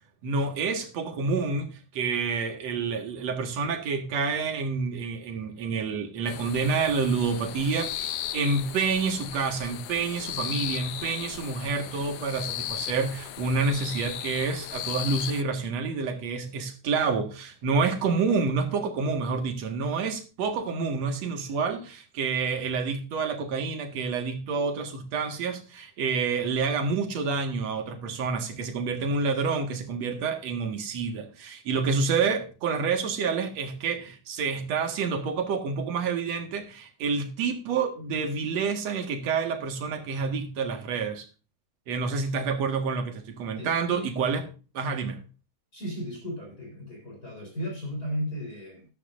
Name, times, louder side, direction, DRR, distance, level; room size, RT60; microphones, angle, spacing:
voice 1, 0.2-41.3 41.9-44.4 44.7-45.2, right 4 dB, 60° right, 2.9 m, -28 dB
sound 1, 6.3-15.4, left 12 dB, 70° left, 1.6 m, -36 dB
voice 2, 43.6-44.1 45.7-48.9, equal, 30° left, 4.3 m, -35 dB
13.5 x 12.0 x 2.6 m
omnidirectional pair, 3.5 m